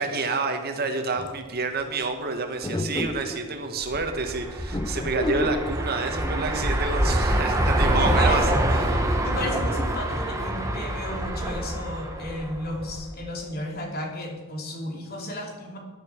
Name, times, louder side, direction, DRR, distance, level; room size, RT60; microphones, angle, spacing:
voice 1, 0.0-9.2, right 3 dB, 45° right, 5 dB, 1.8 m, -29 dB
sound 1, 1.2-1.5 2.6-3.4 4.7-5.7, left 2 dB, 20° left, 0.6 m, -30 dB
sound 2, 3.8-13.1, right 1 dB, 15° right, 1.5 m, -25 dB
voice 2, 7.9-8.6 9.2-15.8, left 1 dB, 45° left, 1 dB, 2.9 m, -33 dB
16.0 x 11.5 x 4.8 m, 1.5 s
head